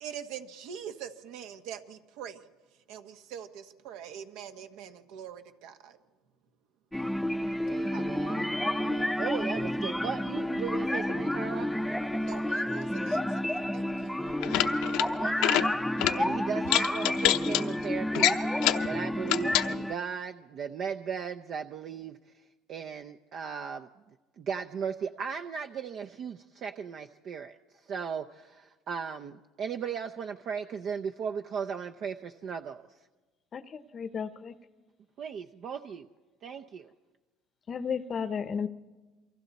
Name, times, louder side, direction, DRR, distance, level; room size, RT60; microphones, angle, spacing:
voice 1, 0.0-2.4 2.9-6.0 7.9-8.1 12.2-14.2, right 8 dB, 75° right, 7 dB, 1.4 m, -43 dB
sound 1, 6.9-19.9, left 1 dB, ahead, 0.6 m, -30 dB
voice 2, 7.6-11.7 15.2-22.2 22.7-23.9 24.4-27.6 27.8-32.9 35.2-36.1 36.4-36.9, right 6 dB, 45° right, 6 dB, 0.6 m, -37 dB
sound 2, 14.3-15.1 15.3-15.7 16.0-16.2 16.7-17.6 18.1-18.9 19.3-19.7, left 15 dB, 75° left, 0.8 m, -26 dB
voice 3, 33.5-34.5 37.7-38.7, left 6 dB, 35° left, 13 dB, 0.8 m, -33 dB
28.5 x 23.5 x 4.1 m, 1.3 s
cardioid pair, 125°, 0 cm